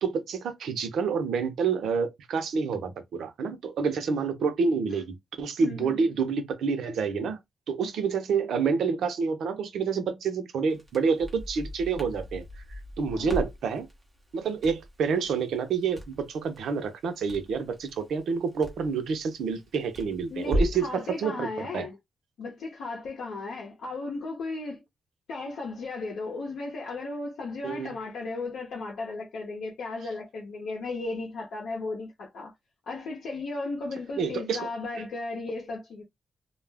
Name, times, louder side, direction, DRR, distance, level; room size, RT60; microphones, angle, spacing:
voice 1, 0.0-7.4 7.7-12.5 13.0-13.9 14.3-21.9 27.6-28.0 34.2-34.7 34.9-35.0, right 5 dB, 80° right, 0.6 m, -28 dB
voice 2, 5.6-6.1 13.1-13.4 20.3-22.0 22.4-24.8 25.3-32.5 32.9-36.1, left 3 dB, 85° left, 0.7 m, -35 dB
Crackle, 10.7-20.9, equal, 15° right, 0.9 m, -37 dB
2.4 x 2.1 x 3.3 m
wide cardioid pair, 180°, 0 cm